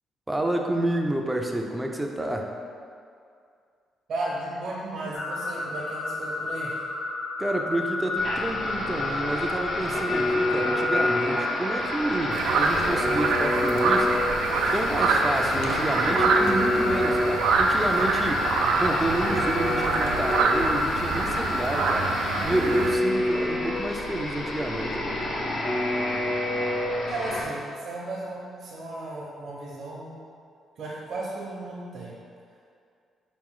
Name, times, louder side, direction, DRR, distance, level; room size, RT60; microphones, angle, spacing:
voice 1, 0.3-2.5 7.4-14.1 14.7-22.1 22.4-25.0, right 1 dB, 15° right, 2 dB, 0.4 m, -29 dB
voice 2, 4.1-6.8 27.1-30.1 30.8-32.1, right 2 dB, 65° right, -5 dB, 0.8 m, -34 dB
sound 1, 5.1-22.4, left 2 dB, 35° left, 1.0 m, -31 dB
sound 2, 8.1-27.4, left 1 dB, 60° left, 0.8 m, -29 dB
sound 3, 12.3-23.0, right 4 dB, 80° right, 0.3 m, -26 dB
4.3 x 3.1 x 3.7 m, 2.3 s
cardioid pair, 90°, 0 cm